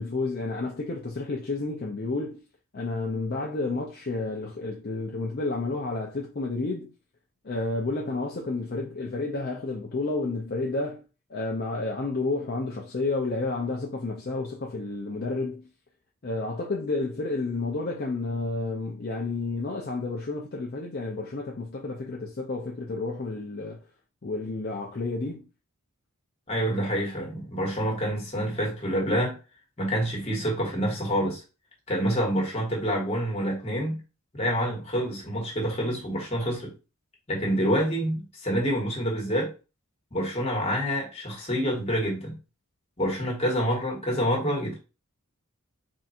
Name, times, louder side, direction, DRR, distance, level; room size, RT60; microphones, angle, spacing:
voice 1, 0.0-2.4 2.7-6.9 7.4-11.0 11.3-15.7 16.2-23.8 24.2-25.5, left 3 dB, 45° left, 0.6 m, -31 dB
voice 2, 26.5-29.3 29.8-31.4 31.9-34.0 34.3-36.7 37.3-39.5 40.1-42.3 43.0-44.8, equal, 30° left, 1.5 m, -27 dB
3.6 x 2.5 x 4.2 m
head